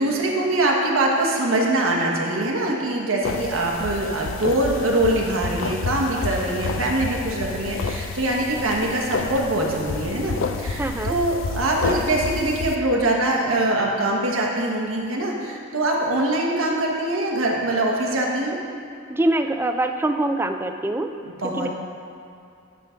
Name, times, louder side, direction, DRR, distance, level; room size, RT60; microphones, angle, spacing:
voice 1, 0.0-18.6 21.3-21.7, right 1 dB, 85° right, -1 dB, 1.2 m, -23 dB
sound 1, 3.2-12.8, left 4 dB, 70° left, 0.5 m, -30 dB
voice 2, 10.8-11.2 19.1-21.1 21.6-21.7, right 1 dB, 10° right, 6 dB, 0.3 m, -23 dB
9.9 x 3.8 x 5.7 m, 2.5 s
head